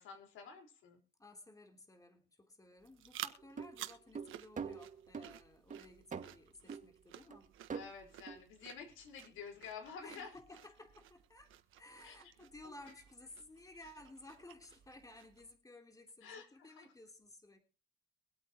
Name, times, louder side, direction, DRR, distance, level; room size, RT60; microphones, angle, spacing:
voice 1, 0.0-1.0 7.7-10.3 12.0-12.1 12.6-12.7 13.8-13.9 16.2-16.5 16.8-16.9, left 6 dB, 90° left, 4.5 m, -50 dB
voice 2, 1.2-7.5 10.0-17.6, left 2 dB, 15° left, 3.3 m, -56 dB
sound 1, 2.8-15.6, right 12 dB, 85° right, 1.3 m, -54 dB
sound 2, 3.4-5.3 5.7-6.3 6.7-6.9 7.3-7.4 7.7-7.9 8.3-8.4, right 6 dB, 40° right, 2.0 m, -44 dB
24.0 x 8.6 x 3.0 m
cardioid pair, 90°, 20 cm